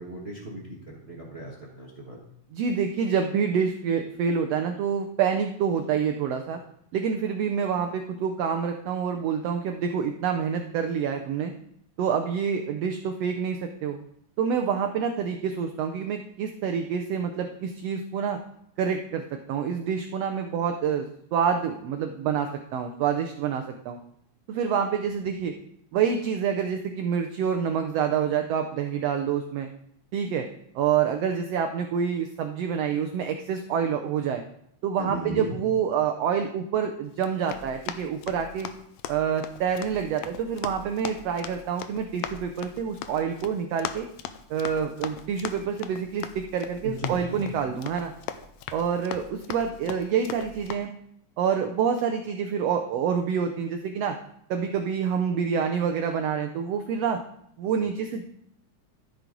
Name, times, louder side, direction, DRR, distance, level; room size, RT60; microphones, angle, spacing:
voice 1, 0.0-2.2 35.0-35.6 46.8-47.6, equal, 55° right, -3 dB, 0.6 m, -36 dB
voice 2, 2.5-6.6 6.9-11.5 12.0-14.0 14.4-18.4 18.8-24.0 24.5-25.5 25.9-29.7 30.1-30.5 30.7-34.4 34.8-38.7 39.1-44.1 44.5-48.1 48.7-50.9 51.4-54.2 54.5-57.2 57.6-58.2, right 7 dB, 90° right, 5 dB, 1.4 m, -27 dB
Run, 37.1-50.8, left 10 dB, 85° left, 1.5 m, -39 dB
13.5 x 6.1 x 3.9 m, 0.72 s
omnidirectional pair, 3.6 m